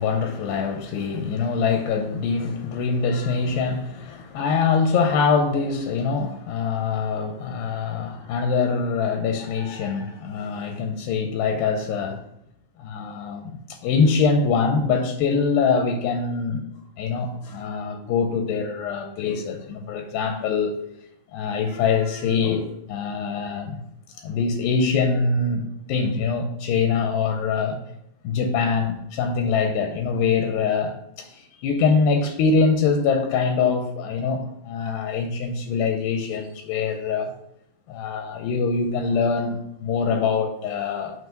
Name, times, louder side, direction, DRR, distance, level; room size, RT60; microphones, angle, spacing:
voice 1, 0.0-12.2 12.8-16.6 17.0-20.8 21.3-23.8 24.2-27.8 28.2-37.3 37.9-41.1, left 5 dB, 85° left, 5 dB, 2.2 m, -24 dB
7.4 x 3.1 x 5.6 m, 0.76 s
omnidirectional pair, 4.6 m